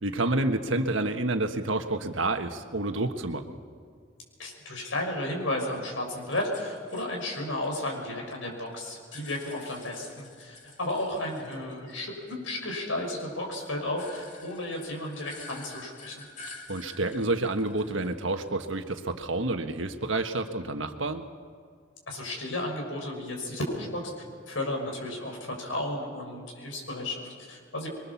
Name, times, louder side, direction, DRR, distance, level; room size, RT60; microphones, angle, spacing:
voice 1, 0.0-3.5 16.7-21.3, right 2 dB, 75° right, 6 dB, 1.5 m, -29 dB
voice 2, 4.4-12.1 12.4-16.2 22.1-24.0 24.5-27.9, left 1 dB, 80° left, 1 dB, 6.3 m, -33 dB
sound 1, 6.3-8.4 8.7-12.0 12.3-18.6, left 3 dB, 40° left, 2.4 m, -49 dB
25.5 x 22.5 x 7.2 m, 2.1 s
head